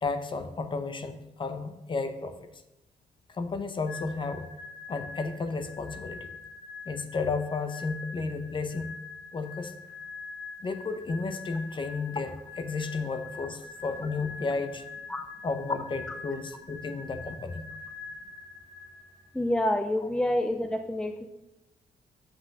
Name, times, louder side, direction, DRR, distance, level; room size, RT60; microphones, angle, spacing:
voice 1, 0.0-2.4 3.3-4.5 4.9-6.3 6.9-8.9 9.3-9.7 10.6-14.9 15.4-17.7, left 4 dB, 30° left, 9 dB, 0.8 m, -33 dB
sound 1, 3.9-19.5, left 4 dB, 85° left, 1.4 m, -44 dB
voice 2, 19.3-21.2, left 1 dB, 5° left, 6 dB, 0.4 m, -28 dB
7.6 x 6.0 x 6.5 m, 0.96 s
cardioid pair, 135°, 15 cm